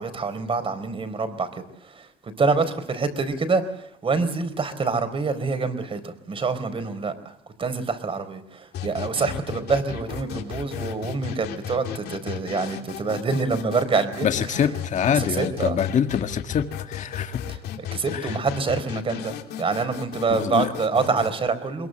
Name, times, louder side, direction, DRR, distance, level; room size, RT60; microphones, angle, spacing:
voice 1, 0.0-1.5 1.8-3.6 4.0-7.3 7.6-14.3 15.1-15.8 17.9-21.9, right 4 dB, 30° right, 12 dB, 4.3 m, -26 dB
sound 1, 8.7-21.3, left 9 dB, 75° left, 3.2 m, -35 dB
voice 2, 14.2-17.4 18.1-18.4 20.3-20.7, left 8 dB, 45° left, 8 dB, 1.8 m, -25 dB
22.5 x 22.0 x 7.8 m, 0.75 s
cardioid pair, 110°, 17 cm